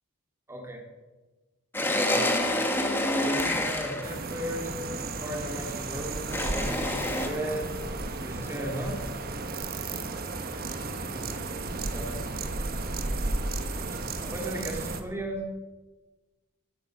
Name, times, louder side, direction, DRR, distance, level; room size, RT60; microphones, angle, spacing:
voice 1, 0.5-0.8 1.8-2.3 3.2-4.8 5.2-7.7 8.2-9.0 9.3-9.5 11.9-12.2 14.2-15.5, equal, 10° right, 1 dB, 2.7 m, -36 dB
sound 1, 1.7-4.1 6.3-7.3, left 1 dB, 10° left, 1.5 m, -27 dB
sound 2, 4.0-15.0, right 3 dB, 40° right, 1.3 m, -33 dB
16.0 x 11.5 x 6.5 m, 1.2 s
head